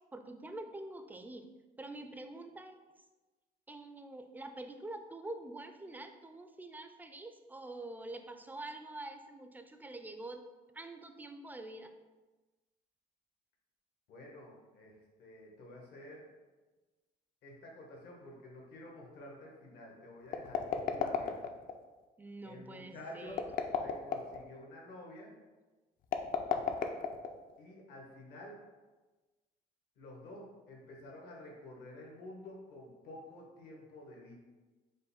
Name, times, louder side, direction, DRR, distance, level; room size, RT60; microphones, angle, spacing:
voice 1, 0.1-1.5 1.8-2.8 3.7-10.4 10.7-11.9 22.2-23.4, right 2 dB, 10° right, 7 dB, 0.3 m, -46 dB
voice 2, 14.1-16.3 17.4-21.4 22.4-23.4 23.8-25.3 27.6-28.6 30.0-34.3, left 1 dB, 75° left, -1 dB, 1.2 m, -50 dB
sound 1, 20.3-21.7 23.3-24.4 26.0-27.6, left 7 dB, 55° left, 0.4 m, -33 dB
5.1 x 2.2 x 4.1 m, 1.2 s
cardioid pair, 110°, 17 cm